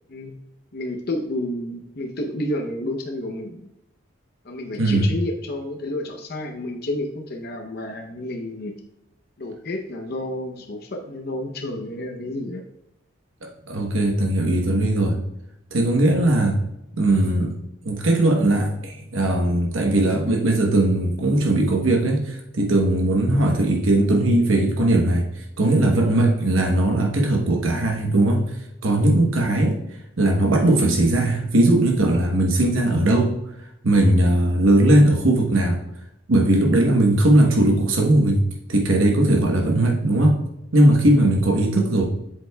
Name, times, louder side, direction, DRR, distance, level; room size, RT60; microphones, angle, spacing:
voice 1, 0.7-3.6 4.4-8.8 9.4-12.6, left 1 dB, 50° left, 2 dB, 0.7 m, -30 dB
voice 2, 4.8-5.1 13.7-15.2 15.7-16.6 17.0-17.5 17.8-28.5 28.8-29.8 30.2-33.4 33.8-35.8 36.3-40.4 40.7-42.0, right 1 dB, 85° right, 1 dB, 1.0 m, -19 dB
8.0 x 7.4 x 2.3 m, 0.84 s
head